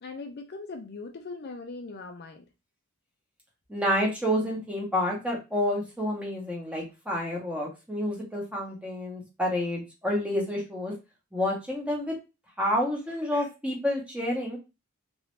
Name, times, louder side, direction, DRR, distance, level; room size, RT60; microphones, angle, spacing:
voice 1, 0.0-2.5, left 3 dB, 50° left, 0.5 m, -40 dB
voice 2, 3.7-10.9 11.3-12.1 12.6-14.6, left 1 dB, 5° right, 1.0 m, -29 dB
3.0 x 2.8 x 3.1 m
head